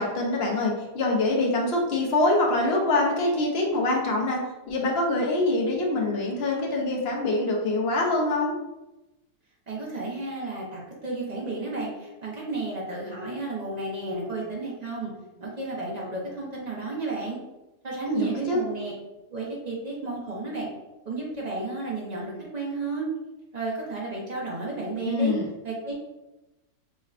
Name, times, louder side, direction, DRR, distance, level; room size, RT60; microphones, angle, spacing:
voice 1, 0.0-4.4 4.7-8.6 18.1-18.6 25.0-25.4, left 2 dB, 55° left, -1 dB, 0.7 m, -24 dB
voice 2, 9.7-15.1 15.4-17.4 17.8-18.9 19.3-20.7 21.0-23.1 23.5-25.4 25.6-25.9, right 3 dB, 40° right, -4 dB, 0.6 m, -32 dB
5.3 x 2.2 x 2.4 m, 1.0 s
omnidirectional pair, 1.7 m